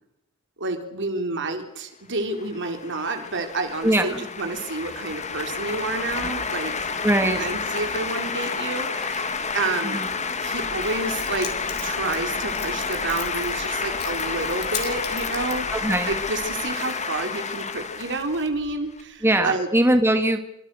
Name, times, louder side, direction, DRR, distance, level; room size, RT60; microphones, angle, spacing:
voice 1, 0.6-6.9 7.3-10.0 10.4-11.5 11.8-15.7 16.1-19.7, right 3 dB, 55° right, 5 dB, 4.3 m, -29 dB
sound 1, 2.3-19.0, left 5 dB, 30° left, 2.2 m, -30 dB
voice 2, 3.8-4.3 7.0-7.4 9.8-10.0 15.7-16.1 19.2-20.5, right 1 dB, 10° right, 6 dB, 2.1 m, -21 dB
Keys jangling, 10.5-16.6, left 6 dB, 50° left, 5.9 m, -38 dB
28.0 x 26.5 x 6.5 m, 0.81 s
head